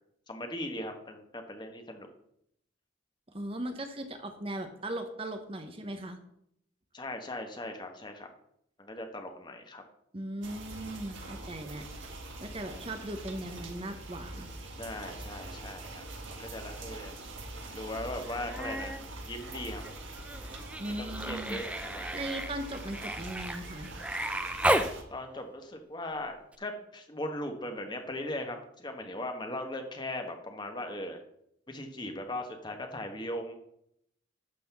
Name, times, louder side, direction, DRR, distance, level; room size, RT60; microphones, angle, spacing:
voice 1, 0.3-2.1 6.9-8.3 8.8-9.8 12.7-12.9 14.8-17.3 17.7-19.0 19.3-19.8 21.0-22.2 25.1-31.2 31.7-33.5, left 1 dB, 25° left, 5 dB, 1.2 m, -39 dB
voice 2, 3.3-6.2 10.1-11.9 12.4-14.5 20.8-21.6 22.1-23.9, right 1 dB, 30° right, 6 dB, 0.9 m, -38 dB
sound 1, 10.4-25.0, right 2 dB, 80° right, 1.7 m, -44 dB
Human voice, 18.2-19.0 19.3-24.9 26.5-26.6, right 1 dB, 5° right, 0.5 m, -34 dB
11.5 x 4.2 x 6.9 m, 0.74 s
head